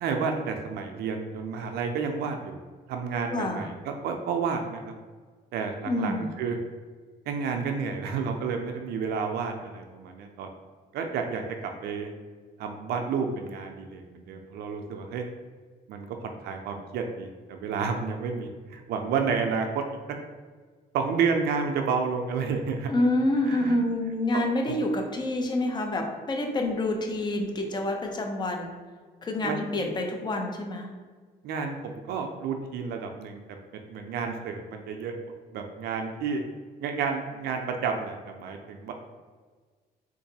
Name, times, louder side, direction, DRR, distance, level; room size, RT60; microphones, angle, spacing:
voice 1, 0.0-2.6 2.9-4.9 5.5-6.6 7.3-10.5 10.9-12.1 12.6-15.2 15.9-19.8 20.9-22.9 23.5-23.8 24.7-24.8 29.4-29.6 31.4-33.6 33.9-35.1 35.5-36.4 36.8-38.9, right 5 dB, 70° right, 4 dB, 0.4 m, -30 dB
voice 2, 3.3-3.6 5.9-6.3 22.9-28.7 29.2-30.9, left 1 dB, 25° left, 3 dB, 0.5 m, -27 dB
3.8 x 2.5 x 2.7 m, 1.5 s
cardioid pair, 110°, 17 cm